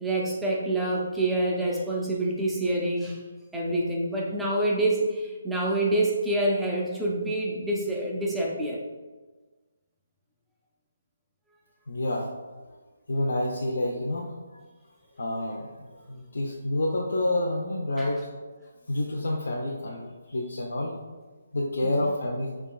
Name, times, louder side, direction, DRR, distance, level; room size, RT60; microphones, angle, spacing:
voice 1, 0.0-3.2 3.5-8.8 18.0-18.1, right 1 dB, ahead, -4 dB, 0.4 m, -27 dB
voice 2, 11.9-12.3 13.1-14.6 15.1-18.3 18.9-21.0 21.5-22.5, left 1 dB, 70° left, -3 dB, 0.6 m, -29 dB
6.0 x 3.5 x 2.2 m, 1.3 s
hypercardioid pair, 180°, 0 cm